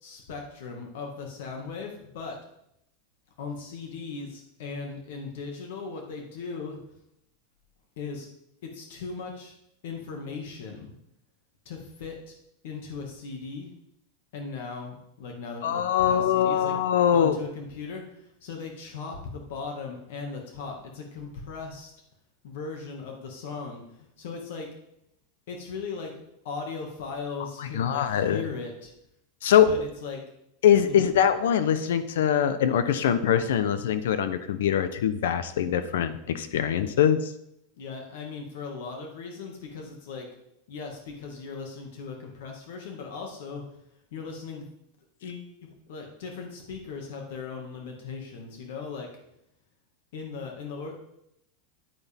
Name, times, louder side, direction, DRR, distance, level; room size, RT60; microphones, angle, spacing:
voice 1, 0.0-2.4 3.4-6.8 8.0-8.3 8.6-9.5 9.8-10.9 11.7-12.3 12.6-13.7 14.3-16.7 17.1-21.9 22.4-24.7 25.5-28.9 29.7-30.2 30.9-31.1 37.8-40.3 40.7-43.6 44.1-44.7 45.2-49.1 50.1-51.0, left 4 dB, 65° left, 2 dB, 2.0 m, -38 dB
voice 2, 15.6-17.4 27.6-28.4 29.4-29.7 30.6-37.3, left 9 dB, 85° left, 12 dB, 0.9 m, -23 dB
9.8 x 9.6 x 3.6 m, 0.77 s
supercardioid pair, 165°, 0 cm